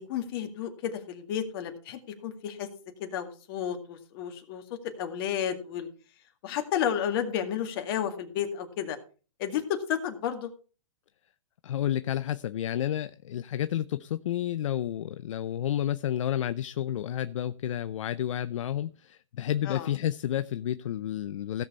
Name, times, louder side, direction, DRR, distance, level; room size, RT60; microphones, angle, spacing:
voice 1, 0.0-2.7 3.0-4.6 5.0-5.9 6.4-9.0 9.4-10.5 19.7-19.9, left 9 dB, 40° left, 2.2 m, -32 dB
voice 2, 11.6-21.6, left 11 dB, 65° left, 0.5 m, -30 dB
16.5 x 6.8 x 4.3 m
hypercardioid pair, 140°, 17 cm